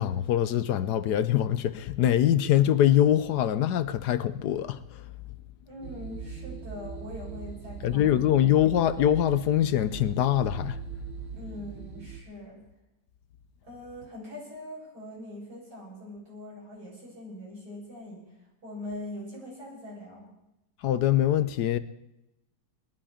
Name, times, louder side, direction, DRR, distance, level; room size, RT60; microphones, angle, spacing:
voice 1, 0.0-4.8 7.8-10.8 20.8-21.8, left 11 dB, 70° left, 1.2 m, -23 dB
voice 2, 5.6-8.3 11.3-12.6 13.6-18.4 18.6-20.3, left 1 dB, 60° right, 8.6 m, -42 dB
sound 1, 5.8-12.2, right 5 dB, 40° right, 1.4 m, -40 dB
20.5 x 12.0 x 5.0 m
omnidirectional pair, 1.9 m